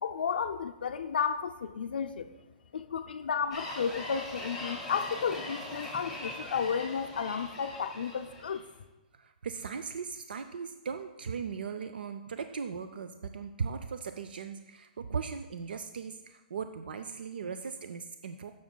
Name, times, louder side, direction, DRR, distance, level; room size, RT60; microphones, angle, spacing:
voice 1, 0.0-2.3 2.7-8.6, left 6 dB, 90° left, 6 dB, 0.4 m, -33 dB
sound 1, 3.5-8.6, left 1 dB, 5° right, 1.6 m, -41 dB
voice 2, 9.1-18.5, right 6 dB, 85° right, 9 dB, 0.4 m, -38 dB
15.0 x 6.1 x 2.2 m, 1.1 s
hypercardioid pair, 155°, 5 cm